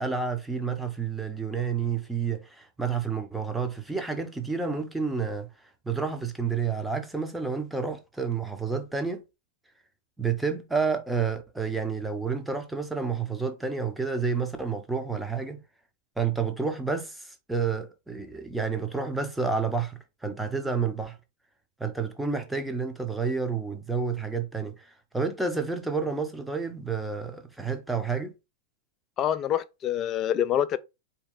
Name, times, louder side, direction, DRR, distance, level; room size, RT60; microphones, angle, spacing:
voice 1, 0.0-5.5 5.8-9.2 10.2-15.6 16.2-21.2 21.8-28.3, right 5 dB, 5° right, 0.8 m, -30 dB
voice 2, 29.2-30.8, left 10 dB, 30° left, 0.4 m, -26 dB
4.3 x 2.9 x 3.8 m
figure-of-eight pair, 90°, 0 cm